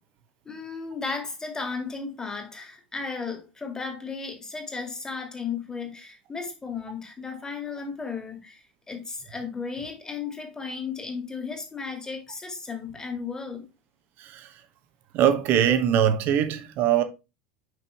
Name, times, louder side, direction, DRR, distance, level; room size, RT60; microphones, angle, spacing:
voice 1, 0.5-8.6 8.9-13.7, left 5 dB, 15° left, 2.0 m, -34 dB
voice 2, 15.1-17.0, right 9 dB, 45° right, 0.9 m, -22 dB
6.1 x 5.5 x 3.2 m
figure-of-eight pair, 75°, 5 cm